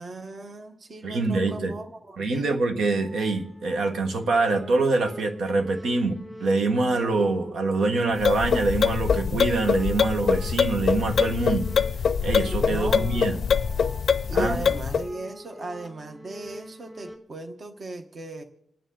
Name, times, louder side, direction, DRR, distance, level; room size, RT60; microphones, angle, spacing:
voice 1, 0.0-2.5 12.6-13.1 14.3-18.4, right 2 dB, 35° right, 1.1 m, -37 dB
voice 2, 1.0-1.7 2.2-11.7 12.2-13.4 14.3-14.6, right 3 dB, 70° right, 1.5 m, -25 dB
sound 1, 2.8-17.2, equal, 10° right, 2.4 m, -45 dB
sound 2, 8.1-15.1, left 6 dB, 50° left, 0.5 m, -24 dB
27.0 x 9.2 x 3.8 m
wide cardioid pair, 130°, 0 cm